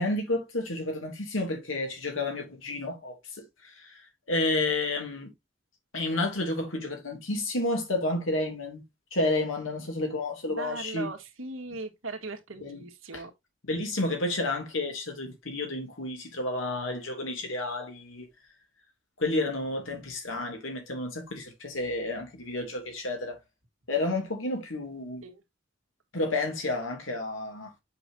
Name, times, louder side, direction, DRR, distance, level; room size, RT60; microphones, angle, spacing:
voice 1, 0.0-4.0 4.3-5.3 5.9-8.8 9.1-11.1 12.6-12.8 13.1-13.2 13.6-18.3 19.2-23.4 23.9-25.2 26.1-27.7, left 2 dB, 80° left, 2.9 m, -31 dB
voice 2, 10.5-13.3 25.2-25.4, right 3 dB, 85° right, 1.8 m, -39 dB
7.7 x 6.0 x 2.8 m
head